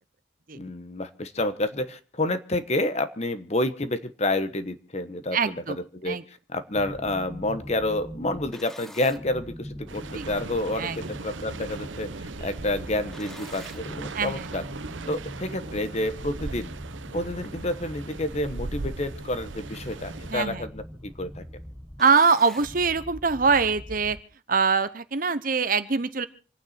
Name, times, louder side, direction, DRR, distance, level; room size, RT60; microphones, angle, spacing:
voice 1, 0.5-6.2 6.5-12.1 12.4-14.6 15.1-16.7 17.1-21.4, left 1 dB, 35° left, 11 dB, 1.1 m, -29 dB
voice 2, 5.3-5.8 6.0-6.2 10.1-10.2 10.8-11.0 14.1-14.6 20.3-20.6 22.0-24.2 24.5-26.3, right 5 dB, 45° right, 12 dB, 0.9 m, -23 dB
sound 1, 6.7-24.2, equal, ahead, 1.1 m, -42 dB
sound 2, 9.9-20.3, right 3 dB, 90° right, 0.9 m, -39 dB
27.5 x 9.4 x 4.3 m, 0.37 s
head